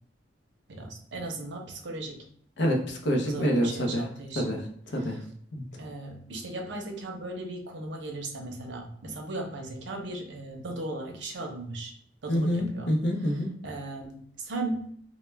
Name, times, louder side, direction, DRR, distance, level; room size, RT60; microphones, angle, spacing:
voice 1, 0.7-2.2 3.2-4.6 5.0-5.2 5.8-11.9 12.2-12.9 13.3-14.9, right 2 dB, 75° right, 2 dB, 0.6 m, -37 dB
voice 2, 2.6-4.0 4.4-4.6 4.9-5.2 5.5-5.6 12.3-13.6, equal, 65° left, 2 dB, 0.6 m, -27 dB
2.2 x 2.1 x 3.2 m, 0.62 s
head